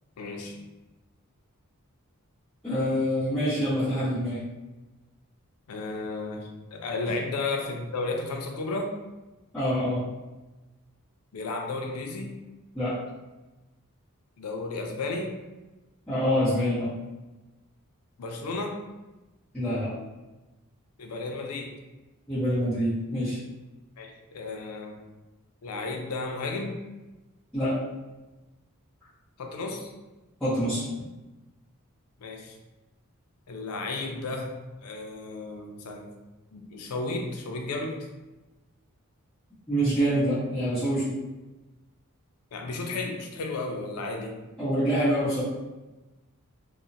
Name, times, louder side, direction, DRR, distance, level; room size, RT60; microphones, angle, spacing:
voice 1, 0.2-0.6 5.7-9.0 11.3-12.4 14.4-15.4 18.2-18.8 21.0-21.7 24.0-25.0 25.6-26.8 29.4-29.9 32.2-32.6 33.5-34.5 34.8-36.1 36.5-38.1 42.5-44.4, left 3 dB, 85° left, 2 dB, 0.4 m, -33 dB
voice 2, 2.6-4.4 9.5-10.0 12.7-13.0 16.1-16.9 19.5-19.9 22.3-23.4 27.5-27.8 30.4-30.9 39.7-41.2 44.6-45.4, equal, 5° left, -15 dB, 0.8 m, -26 dB
2.8 x 2.1 x 2.5 m, 1.1 s
head